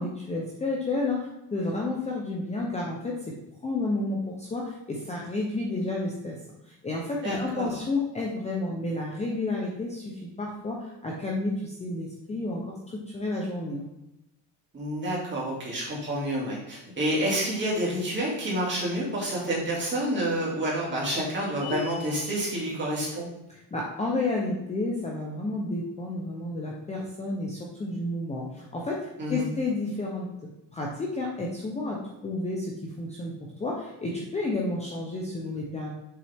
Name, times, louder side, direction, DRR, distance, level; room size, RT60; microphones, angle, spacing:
voice 1, 0.0-3.3 3.6-6.4 6.7-10.1 10.4-13.9 23.5-30.3 30.7-35.9, left 2 dB, 15° left, -2 dB, 0.8 m, -31 dB
voice 2, 7.2-7.7 14.7-23.3 29.2-29.4, right 1 dB, 25° right, -5 dB, 2.8 m, -29 dB
sound 1, 21.6-22.5, left 10 dB, 60° left, 1.1 m, -37 dB
7.0 x 5.9 x 3.6 m, 0.88 s
cardioid pair, 165°, 42 cm